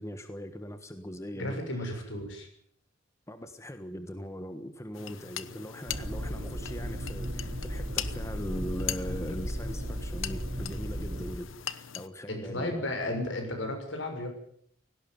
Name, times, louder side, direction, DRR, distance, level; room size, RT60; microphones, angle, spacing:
voice 1, 0.0-2.0 3.3-12.9, equal, 15° left, 8 dB, 1.4 m, -40 dB
voice 2, 1.3-2.5 12.3-14.3, left 1 dB, 70° left, 4 dB, 6.7 m, -34 dB
sound 1, 4.9-12.1, left 10 dB, 90° left, 1.1 m, -41 dB
sound 2, 5.9-11.3, equal, 65° right, 5.3 m, -35 dB
18.0 x 17.5 x 9.6 m, 0.67 s
head